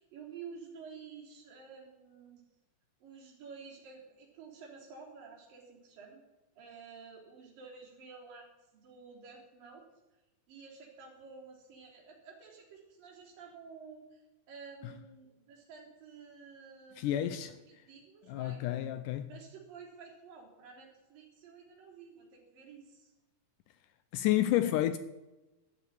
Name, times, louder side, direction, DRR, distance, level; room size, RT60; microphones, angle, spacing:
voice 1, 0.0-2.4 3.0-6.2 6.6-8.5 8.7-9.8 10.5-17.6 17.9-18.6 19.3-23.1, right 5 dB, 65° right, 5.0 m, -51 dB
voice 2, 17.0-17.6 18.3-19.3 24.1-25.0, left 13 dB, 85° left, 1.9 m, -30 dB
13.0 x 8.4 x 9.1 m
omnidirectional pair, 4.3 m